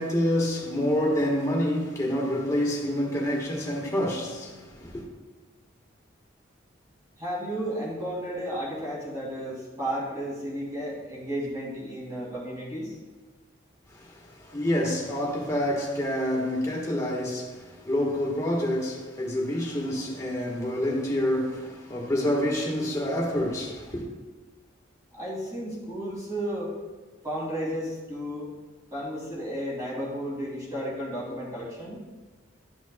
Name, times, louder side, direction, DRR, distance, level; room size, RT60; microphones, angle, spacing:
voice 1, 0.0-5.0 13.9-24.1, left 1 dB, 15° left, 1.4 m, -27 dB
voice 2, 7.2-13.0 25.1-26.7 27.2-28.5 28.9-32.0, equal, 15° right, 2.3 m, -33 dB
12.0 x 6.1 x 2.3 m
head